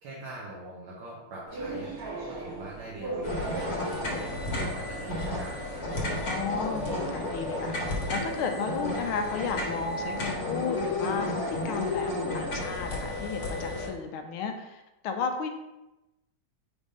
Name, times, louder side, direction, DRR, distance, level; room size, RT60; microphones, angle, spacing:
voice 1, 0.0-2.0 2.2-5.5, right 2 dB, 75° right, -6 dB, 1.9 m, -42 dB
sound 1, 1.5-8.1, right 2 dB, 45° right, 1.8 m, -40 dB
sound 2, 3.2-13.9, left 1 dB, 50° left, 1.8 m, -32 dB
voice 2, 6.3-15.5, left 6 dB, 90° left, 6 dB, 1.5 m, -34 dB
5.1 x 3.5 x 5.3 m, 0.98 s
omnidirectional pair, 2.3 m